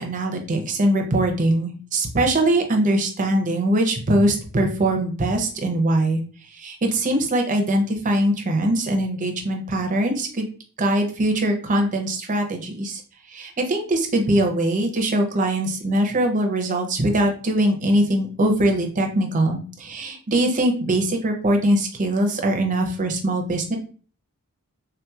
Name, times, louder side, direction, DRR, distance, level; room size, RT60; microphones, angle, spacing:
voice 1, 0.0-6.2 6.5-10.5 10.8-13.0 13.3-23.8, right 1 dB, 35° right, 3 dB, 0.6 m, -22 dB
3.5 x 2.8 x 2.3 m, 0.40 s
head